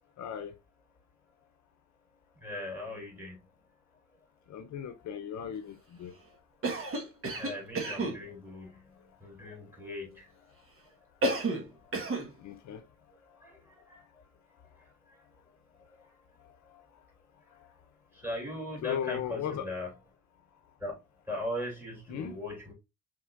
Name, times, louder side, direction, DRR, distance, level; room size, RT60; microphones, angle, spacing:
voice 1, 0.2-0.5 4.5-6.1 12.4-12.8 16.7-16.8 18.8-19.7 22.1-22.4, left 8 dB, 65° left, 0.7 m, -37 dB
voice 2, 2.4-3.4 7.4-8.8 9.2-10.3 13.4-14.0 18.1-19.9 20.8-21.0 21.3-22.7, left 1 dB, 5° right, 2.9 m, -39 dB
Cough, 6.6-8.2 11.2-11.7 11.9-12.3, right 2 dB, 45° right, 1.4 m, -31 dB
5.6 x 3.6 x 2.4 m
cardioid pair, 90°, 30 cm